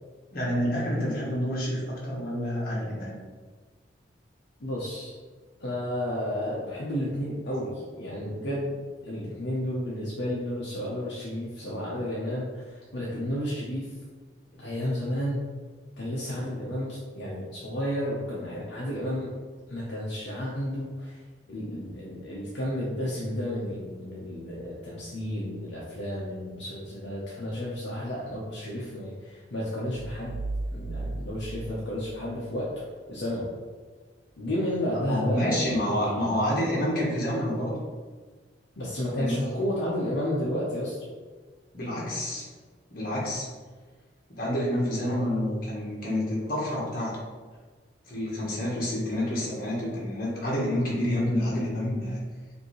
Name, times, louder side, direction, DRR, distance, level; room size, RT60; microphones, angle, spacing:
voice 1, 0.3-3.1 14.5-14.6 21.5-21.8 34.9-37.8 39.1-39.4 41.7-42.4 42.9-43.5 44.3-47.1 48.1-52.2, left 1 dB, 50° left, -5 dB, 1.3 m, -28 dB
voice 2, 4.6-5.2 5.6-8.8 9.0-14.0 14.6-15.4 16.0-19.3 19.7-21.2 21.5-30.3 30.7-32.8 33.1-33.5 34.4-36.4 38.8-41.0, equal, 70° left, -6 dB, 0.8 m, -32 dB
sound 1, 29.9-32.7, right 2 dB, 60° right, 0.4 m, -36 dB
5.0 x 2.8 x 3.1 m, 1.4 s
head